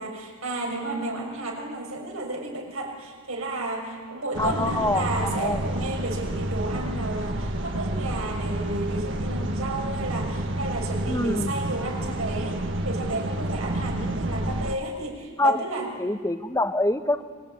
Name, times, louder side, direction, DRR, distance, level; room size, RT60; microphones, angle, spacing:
voice 1, 0.0-15.9, right 2 dB, 75° right, 1 dB, 6.4 m, -32 dB
sound 1, 4.3-14.8, right 1 dB, 60° right, 1.7 m, -29 dB
voice 2, 4.4-5.6 11.1-11.5 14.0-14.1 15.4-15.6 16.0-17.2, left 2 dB, 15° left, 9 dB, 1.0 m, -25 dB
26.0 x 24.0 x 9.1 m, 1.5 s
head